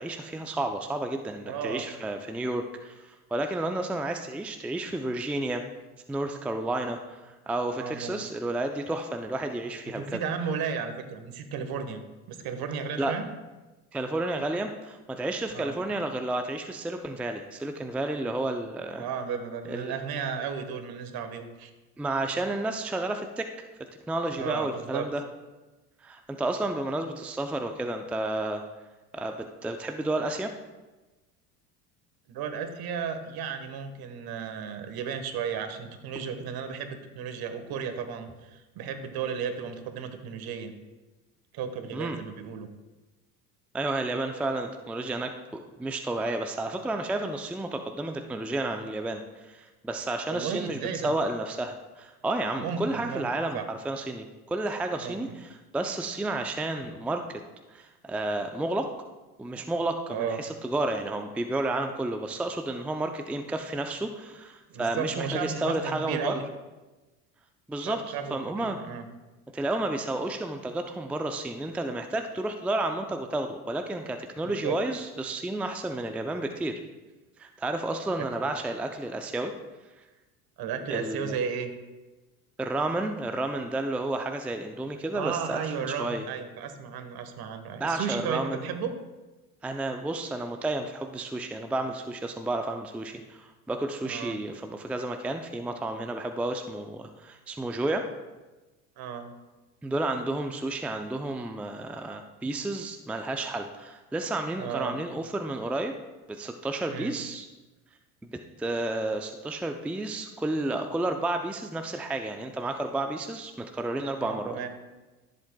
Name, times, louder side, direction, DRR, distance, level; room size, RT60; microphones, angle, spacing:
voice 1, 0.0-5.6 6.1-10.2 13.0-13.1 13.9-19.0 19.7-19.9 22.0-23.5 24.1-25.2 26.0-28.6 29.1-30.5 41.9-42.2 43.7-57.4 57.7-58.9 59.4-66.4 67.7-68.8 69.5-76.8 77.4-79.5 80.9-81.3 82.6-85.6 86.0-86.3 87.8-88.6 89.6-98.1 99.8-106.0 106.3-107.5 108.3-114.6, right 2 dB, 5° right, 6 dB, 0.5 m, -31 dB
voice 2, 1.4-1.9 7.8-8.2 10.0-12.0 12.3-13.3 15.5-15.8 18.9-21.7 24.4-25.0 32.3-40.7 41.5-42.7 50.3-51.1 52.6-53.3 53.5-53.6 55.0-55.4 60.1-60.4 64.7-66.4 67.8-69.0 74.4-74.8 78.4-78.5 80.6-81.7 85.1-88.9 94.0-94.4 99.0-99.3 104.6-105.0 106.9-107.2 114.2-114.7, right 6 dB, 50° right, 8 dB, 1.4 m, -34 dB
13.5 x 7.6 x 2.3 m, 1.2 s
hypercardioid pair, 75°, 46 cm